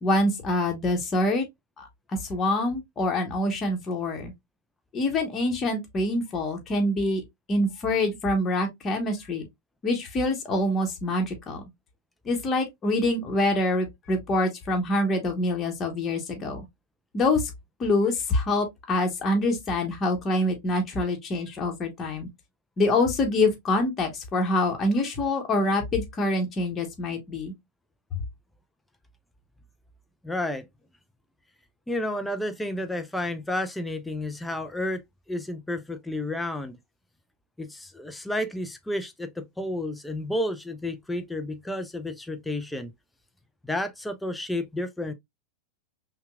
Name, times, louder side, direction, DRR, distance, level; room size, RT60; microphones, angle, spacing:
voice 1, 0.0-1.4 1.8-1.9 2.2-4.3 4.9-7.2 7.5-9.5 9.8-11.6 12.2-16.7 17.1-17.5 17.8-22.3 22.8-27.5, left 2 dB, 25° left, 1.2 m, -25 dB
voice 2, 30.2-30.7 31.9-35.0 35.3-36.7 37.6-42.9 43.6-45.1, left 1 dB, 5° left, 0.5 m, -31 dB
5.6 x 2.3 x 2.3 m
figure-of-eight pair, 90°, 0 cm